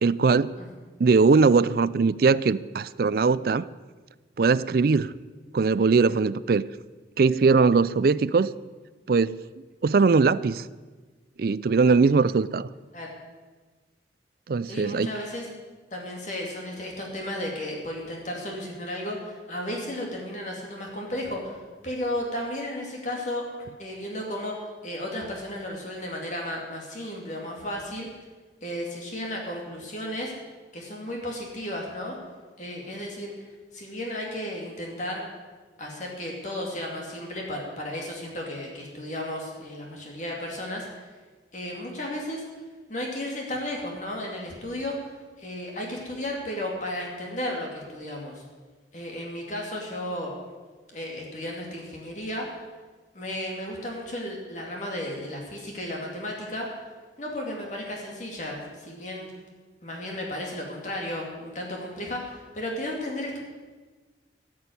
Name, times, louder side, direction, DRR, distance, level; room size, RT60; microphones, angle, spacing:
voice 1, 0.0-0.6 1.0-3.7 4.4-5.1 5.5-6.7 7.2-8.5 9.1-9.4 9.8-10.6 11.4-12.7 14.5-15.1, right 4 dB, 50° right, 18 dB, 0.4 m, -21 dB
voice 2, 14.7-15.5 15.9-23.4 23.8-24.6 24.8-28.1 28.6-30.3 30.7-32.2 32.6-33.5 33.7-35.2 35.8-40.9 41.5-42.4 42.9-45.1 45.4-48.4 48.9-50.3 50.9-52.6 53.1-56.7 57.2-59.3 59.8-63.4, left 1 dB, 40° left, -1 dB, 2.6 m, -34 dB
16.0 x 6.3 x 9.4 m, 1.4 s
head